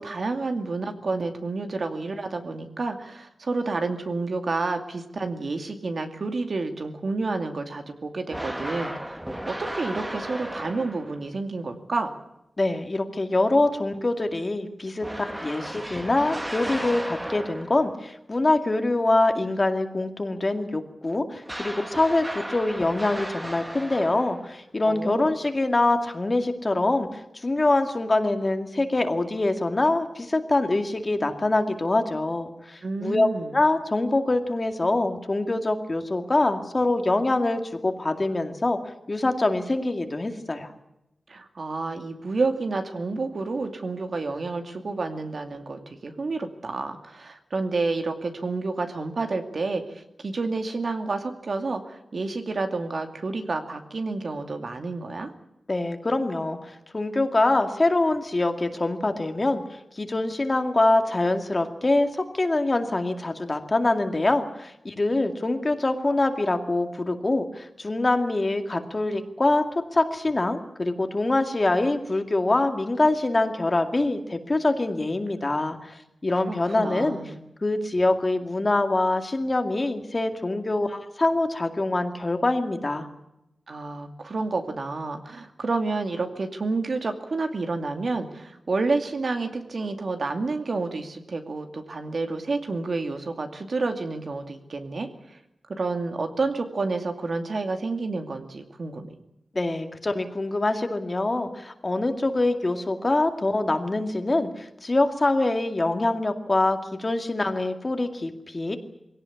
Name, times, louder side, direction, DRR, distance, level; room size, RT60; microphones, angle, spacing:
voice 1, 0.0-9.2 9.5-12.1 24.8-25.3 32.8-33.6 41.3-55.3 76.4-77.4 83.7-95.4 95.8-99.1, right 3 dB, 60° right, 6 dB, 2.4 m, -29 dB
sound 1, 8.3-11.3 15.0-17.9 21.5-24.6, right 1 dB, 10° right, 1.6 m, -35 dB
voice 2, 12.6-38.8 39.1-40.7 55.7-69.6 69.9-77.2 77.6-83.1 99.5-108.8, left 2 dB, 30° left, 6 dB, 2.2 m, -24 dB
22.0 x 17.5 x 9.9 m, 0.86 s
wide cardioid pair, 115°, 0 cm